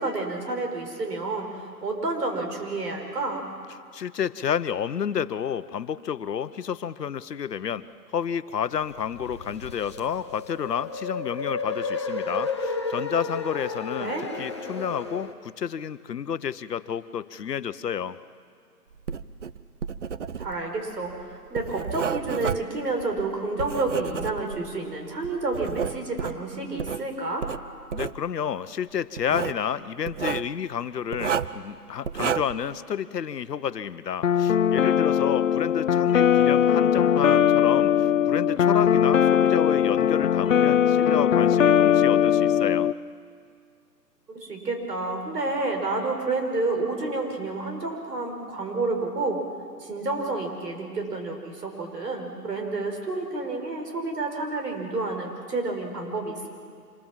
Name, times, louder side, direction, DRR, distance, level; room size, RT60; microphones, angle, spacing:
voice 1, 0.0-3.4 14.0-14.3 20.4-27.5 44.3-49.4 49.8-56.5, right 3 dB, 75° right, 3 dB, 5.5 m, -30 dB
voice 2, 3.9-7.8 8.1-14.1 14.4-18.2 27.9-42.9, left 8 dB, 75° left, 14 dB, 1.0 m, -30 dB
sound 1, 8.8-15.3, left 3 dB, 20° left, 0.6 m, -33 dB
Writing, 19.0-24.8 25.2-27.0 27.4-28.2 29.2-29.6 30.0-30.5 31.1-31.6 32.0-32.6, right 7 dB, 50° right, 0.7 m, -31 dB
sound 2, 34.2-42.9, left 9 dB, 55° left, 0.6 m, -20 dB
26.0 x 21.0 x 7.5 m, 2.1 s
hypercardioid pair, 165°, 48 cm